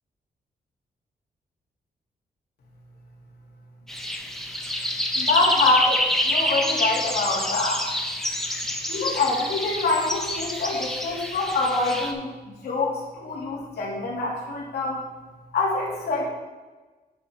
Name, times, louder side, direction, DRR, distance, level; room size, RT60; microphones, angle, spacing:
sound 1, 3.9-12.1, left 1 dB, ahead, 0.8 m, -27 dB
voice 1, 5.1-7.8 8.9-15.0 15.5-16.3, left 3 dB, 85° left, -4 dB, 2.6 m, -25 dB
10.0 x 5.4 x 4.6 m, 1.2 s
wide cardioid pair, 130°, 16 cm